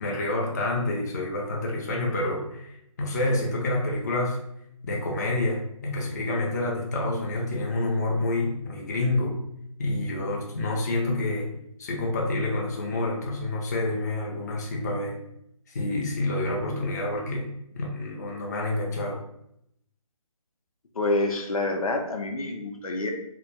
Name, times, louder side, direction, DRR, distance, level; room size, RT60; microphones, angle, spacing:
voice 1, 0.0-4.4 4.8-9.4 9.8-11.5 11.8-15.2 15.7-19.2, left 2 dB, 30° left, -1 dB, 0.3 m, -28 dB
voice 2, 20.9-23.1, left 2 dB, 85° left, 3 dB, 0.5 m, -27 dB
2.1 x 2.1 x 2.7 m, 0.78 s
figure-of-eight pair, 155°, 18 cm